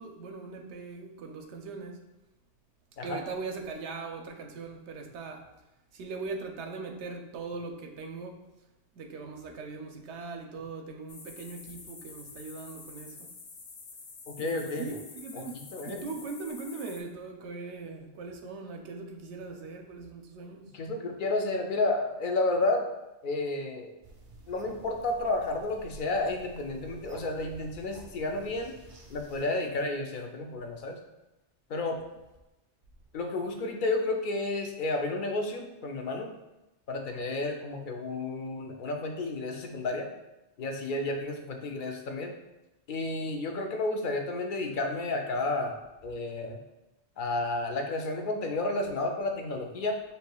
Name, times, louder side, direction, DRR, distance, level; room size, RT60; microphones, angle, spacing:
voice 1, 0.0-2.1 3.0-5.5 5.9-8.4 8.9-13.3 14.4-20.8, right 4 dB, 85° right, 3 dB, 0.9 m, -40 dB
sound 1, 11.1-17.0, left 4 dB, 90° left, 1.0 m, -48 dB
voice 2, 14.3-15.0 15.3-16.1 20.7-22.9 23.2-23.9 24.5-28.7 29.1-31.0 31.7-32.0 33.1-36.3 36.9-40.1 40.6-42.3 42.9-46.6 47.2-50.0, left 2 dB, 60° left, 3 dB, 0.6 m, -31 dB
sound 2, 24.0-29.4, right 1 dB, 50° right, 0.4 m, -50 dB
6.5 x 2.7 x 2.2 m, 0.99 s
omnidirectional pair, 1.1 m